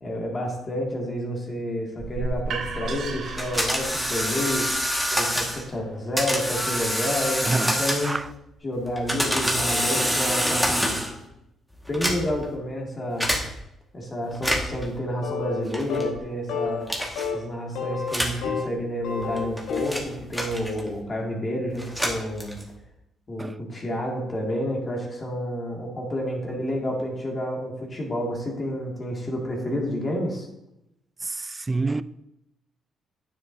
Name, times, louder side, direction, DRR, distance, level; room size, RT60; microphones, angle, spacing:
voice 1, 0.0-4.6 5.1-8.2 8.6-11.0 11.9-13.3 13.9-16.9 17.3-22.6 23.3-30.5, equal, 35° left, 2.2 m, -29 dB
sound 1, 2.0-7.8, right 3 dB, 70° right, 1.3 m, -36 dB
sound 2, 3.4-5.6 6.2-8.3 8.9-11.2 11.9-12.5 13.2-13.4 14.3-14.8 15.7-16.1 16.9-17.3 18.1-18.4 19.2-21.0 21.7-22.8, equal, ahead, 1.7 m, -26 dB
voice 2, 7.4-8.3 23.4-23.5 31.2-32.0, right 3 dB, 20° right, 0.3 m, -28 dB
sound 3, 15.2-15.6 15.9-16.2 16.5-16.9 17.1-17.4 17.7-18.7 19.0-20.0, left 6 dB, 85° left, 1.1 m, -30 dB
9.4 x 7.3 x 2.7 m
cardioid pair, 90°, 0 cm